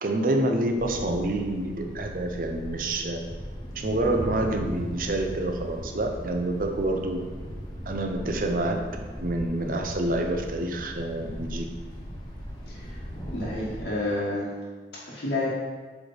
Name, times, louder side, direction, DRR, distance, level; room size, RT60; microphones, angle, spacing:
voice 1, 0.0-3.2 3.8-7.2 7.9-8.8 9.2-11.7, right 1 dB, 50° right, 4 dB, 0.6 m, -27 dB
Thunder, 0.7-13.8, equal, 25° left, 1.0 m, -38 dB
voice 2, 12.7-13.0 13.3-14.5 15.1-15.5, left 2 dB, 80° left, -10 dB, 1.4 m, -29 dB
8.1 x 3.3 x 4.0 m, 1.4 s
head